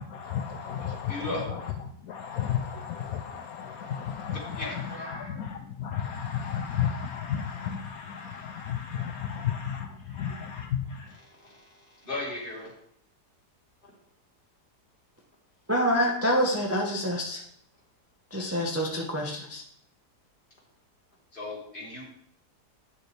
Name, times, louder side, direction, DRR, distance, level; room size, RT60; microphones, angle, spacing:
voice 1, 0.0-1.7 2.0-11.2, left 8 dB, 70° left, 4 dB, 1.0 m, -33 dB
voice 2, 0.8-1.6 4.5-5.4 10.1-10.2 11.4-12.7 21.3-22.0, left 2 dB, 30° left, -4 dB, 2.3 m, -37 dB
voice 3, 15.7-17.4 18.3-19.6, equal, 10° right, -1 dB, 0.8 m, -26 dB
8.7 x 6.5 x 3.3 m, 0.69 s
omnidirectional pair, 1.7 m